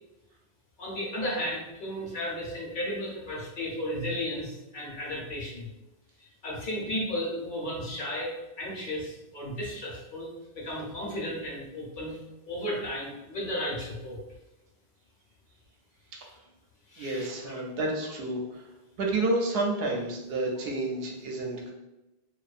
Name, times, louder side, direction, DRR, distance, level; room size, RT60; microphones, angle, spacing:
voice 1, 0.8-5.7 6.2-10.3 10.5-12.2 12.5-14.2 16.2-16.3 16.9-17.3, equal, 55° left, -4 dB, 0.8 m, -34 dB
voice 2, 17.0-18.7 19.0-21.7, right 2 dB, 75° right, 0 dB, 0.8 m, -30 dB
2.5 x 2.3 x 2.4 m, 0.99 s
omnidirectional pair, 1.1 m